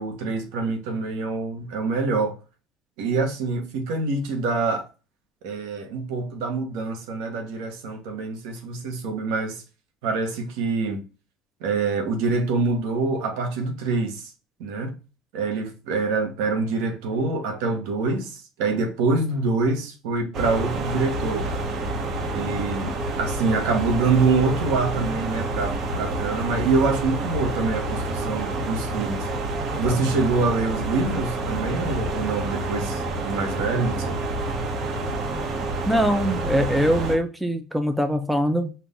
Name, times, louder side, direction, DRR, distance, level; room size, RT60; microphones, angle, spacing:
voice 1, 0.0-2.4 3.0-4.8 5.4-9.6 10.0-11.0 11.6-14.2 14.6-15.0 15.3-21.5 22.3-29.3 29.8-34.2, right 3 dB, 80° right, 1.2 m, -25 dB
sound 1, 20.3-37.2, right 2 dB, 50° right, 1.2 m, -28 dB
voice 2, 35.9-38.7, equal, 5° right, 0.6 m, -22 dB
4.6 x 2.5 x 3.5 m
supercardioid pair, 110°, 0 cm